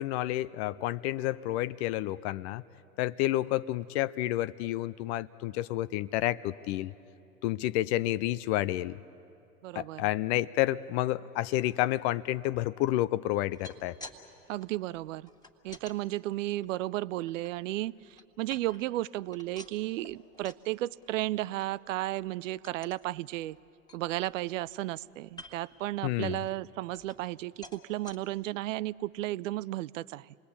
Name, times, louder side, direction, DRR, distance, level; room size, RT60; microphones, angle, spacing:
voice 1, 0.0-2.6 3.0-6.9 7.4-9.0 9.7-14.0 26.0-26.4, left 15 dB, 50° left, 16 dB, 0.6 m, -30 dB
voice 2, 9.6-10.1 14.5-15.3 15.6-23.6 23.9-30.4, right 16 dB, 70° right, 21 dB, 0.6 m, -34 dB
sound 1, 13.4-14.2 14.5-16.0 16.5-17.5 18.0-19.0 19.3-20.7 21.0-21.3 21.6-21.7 22.1-22.3 22.6-23.0 23.5-23.6 23.9-24.7 25.3-25.8 26.3-27.4 27.6-28.2 28.8-28.9 29.2-29.3, left 1 dB, 10° left, 2.2 m, -51 dB
27.5 x 20.0 x 8.5 m, 2.7 s
hypercardioid pair, 95°, 41 cm